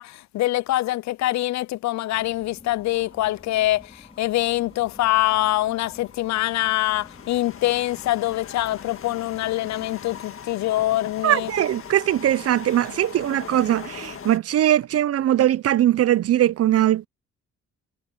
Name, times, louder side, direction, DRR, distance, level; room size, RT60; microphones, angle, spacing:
voice 1, 0.0-11.5, left 16 dB, 65° left, 0.5 m, -24 dB
sound 1, 2.1-10.2, left 3 dB, 20° left, 5.0 m, -50 dB
sound 2, 2.9-14.4, left 7 dB, 45° left, 1.8 m, -42 dB
voice 2, 11.2-17.1, right 12 dB, 50° right, 0.6 m, -20 dB
cardioid pair, 90°, 30 cm